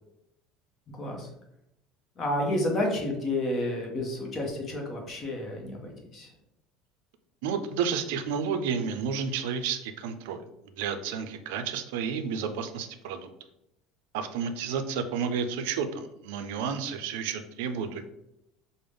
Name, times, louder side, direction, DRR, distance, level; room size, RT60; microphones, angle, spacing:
voice 1, 0.9-1.3 2.2-6.3, left 1 dB, 25° left, 1 dB, 0.7 m, -30 dB
voice 2, 7.4-10.4 10.8-13.3 14.1-18.0, right 6 dB, 85° right, 8 dB, 0.4 m, -31 dB
5.2 x 2.0 x 3.4 m, 0.82 s
cardioid pair, 175°, 0 cm